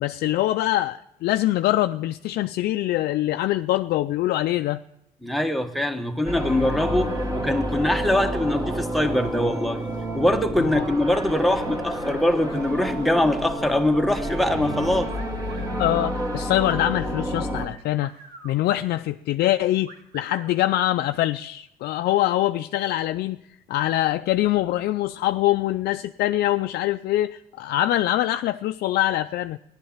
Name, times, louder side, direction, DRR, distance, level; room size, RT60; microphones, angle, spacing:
voice 1, 0.0-4.8 10.6-10.8 15.8-18.1 18.4-23.4 23.7-29.6, left 14 dB, 70° left, 0.4 m, -24 dB
voice 2, 5.2-9.9 10.1-15.1, left 1 dB, ahead, 1.2 m, -23 dB
sound 1, 6.3-17.7, right 1 dB, 20° right, 1.9 m, -29 dB
sound 2, 15.1-16.0 17.6-18.6 19.9-20.6, right 4 dB, 70° right, 2.4 m, -46 dB
15.0 x 11.5 x 7.3 m
cardioid pair, 110°, 17 cm